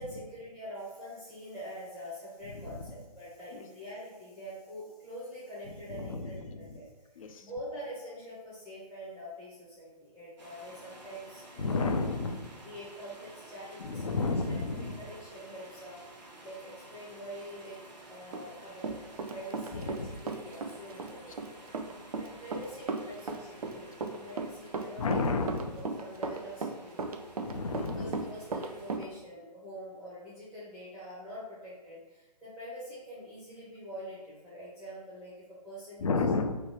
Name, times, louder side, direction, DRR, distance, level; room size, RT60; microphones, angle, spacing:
voice 1, 0.0-6.9 7.4-11.4 11.7-11.9 12.6-14.6 15.0-16.0 16.4-17.8 18.1-19.0 19.3-21.6 22.2-25.2 25.7-27.3 27.7-35.3 35.6-36.3, equal, ahead, -11 dB, 0.6 m, -45 dB
voice 2, 5.9-6.8 7.2-7.5 11.6-12.5 13.8-15.0 19.7-20.2 25.0-25.8 27.4-28.3 36.0-36.6, left 3 dB, 55° left, 5 dB, 0.4 m, -32 dB
sound 1, 10.4-29.0, right 1 dB, 85° right, 0.9 m, -52 dB
Run, 18.3-20.0 20.3-29.1, right 4 dB, 60° right, 0.5 m, -36 dB
3.2 x 2.2 x 4.2 m, 1.1 s
figure-of-eight pair, 135°, 21 cm